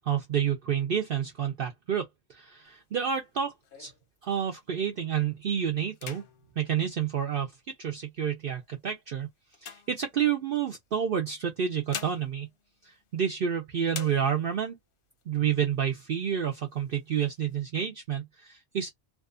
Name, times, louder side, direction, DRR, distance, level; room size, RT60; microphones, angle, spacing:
voice 1, 0.1-3.5 3.8-3.9 4.2-6.2 6.6-7.5 7.8-9.3 9.6-12.5 12.8-14.8 15.3-18.9, right 8 dB, 55° right, 0.7 m, -29 dB
sound 1, 2.7-4.8 5.3-5.5 5.9-7.8 8.5-10.6 11.5-13.5 13.9-14.7 15.2-15.3 15.6-16.2 16.7-17.6, left 6 dB, 55° left, 0.7 m, -46 dB
2.6 x 2.4 x 2.4 m
omnidirectional pair, 1.3 m